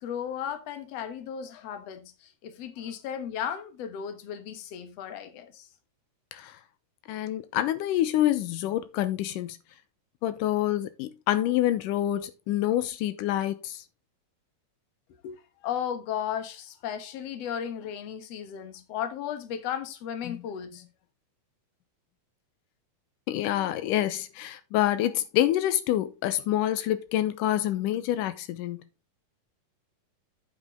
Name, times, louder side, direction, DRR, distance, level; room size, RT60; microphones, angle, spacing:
voice 1, 0.0-5.7 15.2-20.8, left 9 dB, 60° left, 2.2 m, -35 dB
voice 2, 7.1-9.6 10.2-13.8 20.3-20.4 23.3-28.8, left 13 dB, 90° left, 2.4 m, -27 dB
8.2 x 7.5 x 3.7 m
omnidirectional pair, 3.7 m